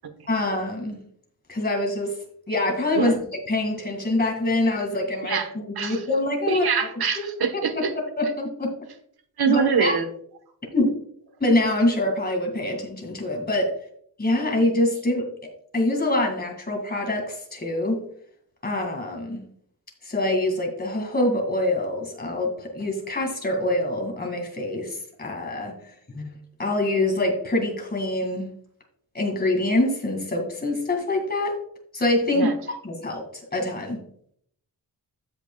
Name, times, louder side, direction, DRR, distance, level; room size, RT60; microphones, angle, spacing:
voice 1, 0.3-1.0 1.5-2.1 2.5-3.2 3.5-6.7 6.9-7.0 7.8-7.9 8.2-8.7 9.5-9.9 10.7-10.9 11.4-13.7 14.2-15.3 15.7-18.0 18.6-19.4 20.0-25.7 26.1-28.5 29.1-31.6 31.9-32.5 32.8-33.2 33.5-34.0, left 1 dB, 25° left, 1 dB, 2.2 m, -25 dB
voice 2, 5.3-6.0 6.5-7.9 9.4-10.0 32.3-32.5, right 6 dB, 80° right, 8 dB, 1.2 m, -24 dB
15.5 x 5.7 x 2.3 m, 0.64 s
wide cardioid pair, 145°, 38 cm